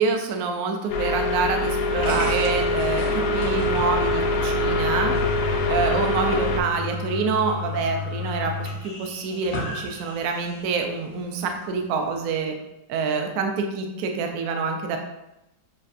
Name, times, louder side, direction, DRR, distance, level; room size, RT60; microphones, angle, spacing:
voice 1, 0.0-3.0 3.3-5.1 5.7-12.5 12.9-15.0, right 4 dB, 70° right, 4 dB, 0.9 m, -26 dB
sound 1, 0.9-6.6, left 2 dB, 80° left, 1.2 m, -24 dB
sound 2, 2.0-10.8, left 4 dB, 55° left, 0.6 m, -32 dB
6.5 x 2.5 x 2.4 m, 0.90 s
omnidirectional pair, 1.9 m